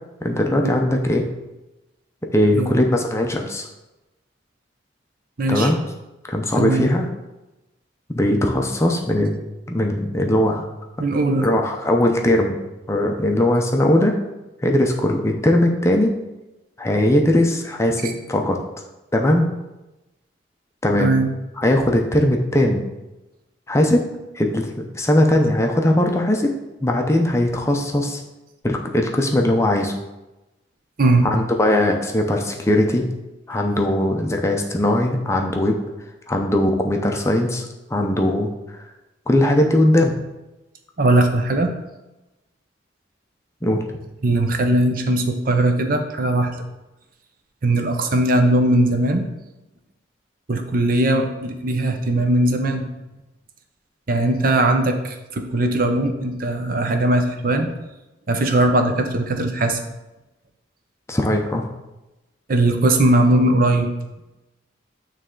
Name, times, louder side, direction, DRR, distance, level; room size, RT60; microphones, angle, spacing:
voice 1, 0.2-1.3 2.3-3.7 5.5-5.8 6.3-7.1 8.1-9.4 9.7-10.6 11.4-12.6 12.9-14.2 14.6-16.2 16.8-18.6 19.1-19.5 20.8-21.1 21.6-22.8 23.7-24.0 24.3-24.7 24.9-26.5 26.8-28.2 28.6-29.9 31.2-33.1 33.5-35.8 36.3-37.7 37.9-38.8 39.3-40.2 43.6-43.8 61.1-61.6, left 1 dB, 15° left, 2 dB, 0.5 m, -19 dB
voice 2, 5.4-5.7 6.6-6.9 11.0-11.4 18.0-18.1 21.0-21.3 31.0-31.3 41.0-41.7 44.2-46.5 47.6-49.3 50.5-52.9 54.1-57.7 58.3-59.8 62.5-63.9, right 2 dB, 45° right, 6 dB, 0.6 m, -19 dB
8.9 x 3.2 x 3.7 m, 1.0 s
head